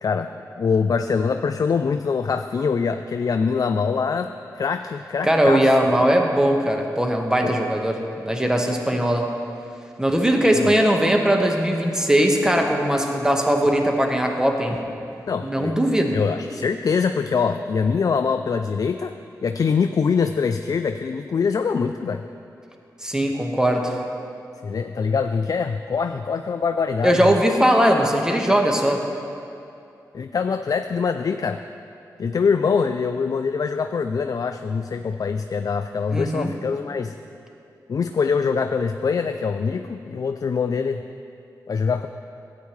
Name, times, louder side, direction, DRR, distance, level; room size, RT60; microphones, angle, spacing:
voice 1, 0.0-5.7 7.4-7.5 10.5-10.7 15.3-15.8 16.1-19.1 19.4-22.2 24.6-27.3 30.1-31.6 32.2-37.1 37.9-41.0 41.7-42.1, left 5 dB, 55° left, 8 dB, 0.3 m, -24 dB
voice 2, 5.2-9.3 10.0-14.8 15.4-16.1 23.0-23.9 27.0-29.0 36.1-36.5, equal, 10° right, 2 dB, 1.3 m, -20 dB
13.0 x 8.4 x 3.2 m, 2.6 s
supercardioid pair, 40°, 7 cm